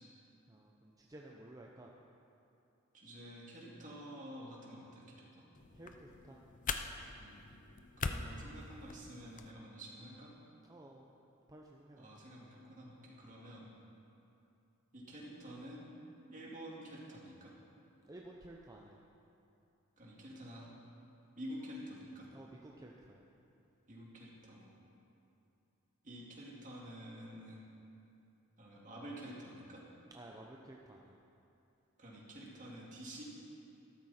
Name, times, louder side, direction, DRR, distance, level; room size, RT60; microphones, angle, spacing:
voice 1, 0.5-1.9 5.7-6.4 10.7-11.0 11.5-12.1 13.3-13.4 18.1-19.0 22.3-23.2 30.1-31.2, right 1 dB, 15° right, -1 dB, 0.7 m, -54 dB
voice 2, 2.9-5.5 7.2-7.4 8.0-10.3 12.0-13.7 14.9-15.8 16.3-17.5 20.0-20.7 21.4-22.3 23.9-24.7 26.0-27.6 28.6-29.8 32.0-33.2, equal, 35° right, -4 dB, 2.4 m, -49 dB
sound 1, 5.5-9.5, left 4 dB, 35° left, 0.5 m, -43 dB
13.5 x 12.5 x 4.3 m, 2.7 s
head